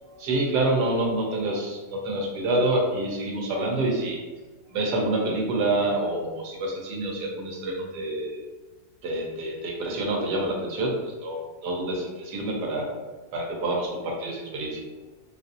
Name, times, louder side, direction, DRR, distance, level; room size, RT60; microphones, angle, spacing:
voice 1, 0.0-4.3 4.7-8.4 9.0-13.0 13.3-14.8, right 2 dB, 90° right, 0 dB, 1.4 m, -27 dB
3.7 x 2.5 x 2.7 m, 1.2 s
omnidirectional pair, 1.7 m